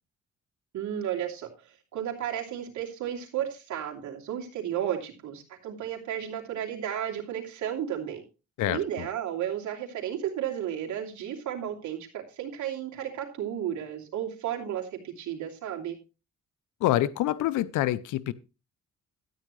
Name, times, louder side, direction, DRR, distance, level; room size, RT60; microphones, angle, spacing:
voice 1, 0.7-1.5 1.9-8.2 8.7-16.0, right 10 dB, 70° right, 3.0 m, -33 dB
voice 2, 8.6-9.1 16.8-18.3, left 14 dB, 85° left, 0.6 m, -26 dB
13.0 x 9.0 x 3.1 m
cardioid pair, 90°, 30 cm